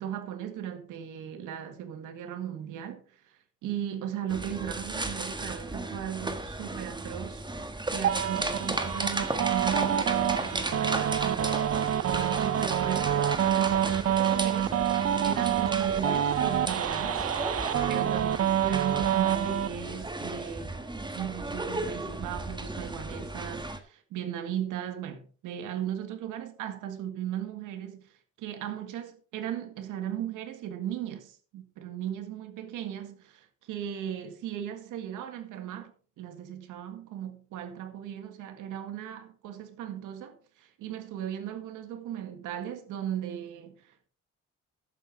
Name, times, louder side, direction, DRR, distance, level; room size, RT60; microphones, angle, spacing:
voice 1, 0.0-3.3 3.6-7.4 7.9-11.6 12.0-14.7 15.2-17.3 17.9-20.8 21.1-35.9 36.2-44.1, right 10 dB, 90° right, 1.8 m, -37 dB
sound 1, 4.3-23.8, right 2 dB, 15° right, 1.6 m, -35 dB
sound 2, 8.0-19.7, right 10 dB, 50° right, 0.7 m, -27 dB
11.5 x 9.0 x 4.0 m
cardioid pair, 90°, 30 cm